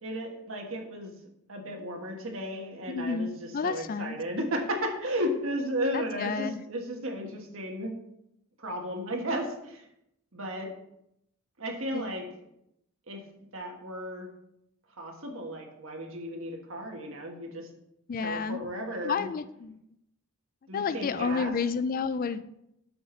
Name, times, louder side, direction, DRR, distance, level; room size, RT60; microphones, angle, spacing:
voice 1, 0.0-1.1 1.5-8.0 8.6-9.8 10.3-10.7 11.6-12.2 13.1-13.2 13.5-14.3 15.0-17.7 18.2-19.3 20.7-21.5, equal, 70° right, 1 dB, 1.5 m, -34 dB
voice 2, 2.9-4.2 5.9-6.6 11.9-12.2 18.1-18.6 19.0-19.8 20.7-22.4, left 5 dB, 40° left, 13 dB, 0.3 m, -31 dB
7.7 x 5.9 x 3.9 m, 0.79 s
head